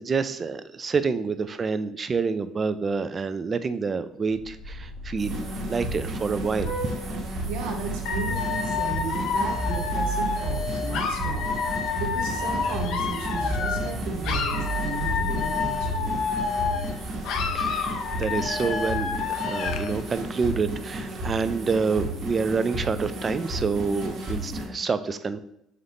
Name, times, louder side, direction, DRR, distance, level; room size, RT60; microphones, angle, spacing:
voice 1, 0.0-5.4 5.7-6.7 17.5-25.4, right 5 dB, 35° right, 12 dB, 0.3 m, -27 dB
Vehicle horn car horn honking, 4.3-19.7, right 1 dB, 90° left, 1.5 m, -36 dB
sound 1, 5.2-24.6, right 1 dB, 55° right, 1.0 m, -33 dB
voice 2, 7.4-11.5 12.0-16.1, right 4 dB, 85° right, 3 dB, 0.7 m, -35 dB
Dog / Alarm, 8.1-14.0 14.2-17.0 17.2-20.0, left 5 dB, 70° left, 0.5 m, -29 dB
3.8 x 2.7 x 3.5 m, 0.77 s
supercardioid pair, 90°, 0 cm